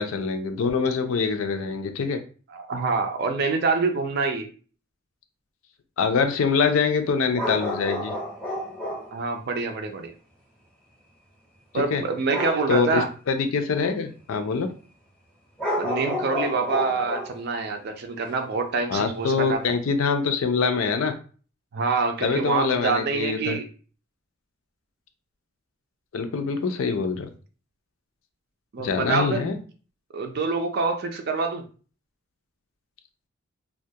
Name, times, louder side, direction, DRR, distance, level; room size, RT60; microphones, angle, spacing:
voice 1, 0.0-2.2 6.0-8.1 11.7-12.0 12.7-14.7 18.9-21.1 22.2-23.6 26.1-27.3 28.8-29.6, left 5 dB, 75° left, 7 dB, 0.4 m, -24 dB
voice 2, 2.5-4.5 9.1-10.1 11.7-13.1 15.8-19.6 21.7-23.7 26.5-26.7 28.7-29.5 30.1-31.6, right 4 dB, 50° right, 5 dB, 0.4 m, -26 dB
sound 1, 7.3-9.2 12.3-12.7 14.6-14.7 15.6-17.4 18.3-18.4, equal, 5° left, 0.6 m, -30 dB
2.2 x 2.1 x 2.7 m, 0.39 s
head